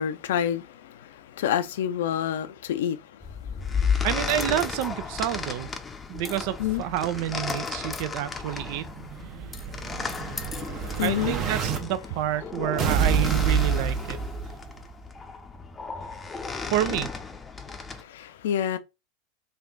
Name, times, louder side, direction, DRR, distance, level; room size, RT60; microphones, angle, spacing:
voice 1, 0.0-3.9 6.6-6.8 10.1-11.3 18.0-18.8, left 9 dB, 70° left, 0.4 m, -29 dB
sound 1, 3.2-18.0, left 5 dB, 20° left, 0.6 m, -34 dB
voice 2, 4.0-5.7 6.1-8.9 11.0-14.2 16.7-17.1, right 13 dB, 60° right, 0.3 m, -28 dB
Explosion, 8.4-11.8 12.8-14.8, right 6 dB, 40° right, 0.9 m, -27 dB
3.3 x 2.4 x 3.7 m
hypercardioid pair, 90°, 0 cm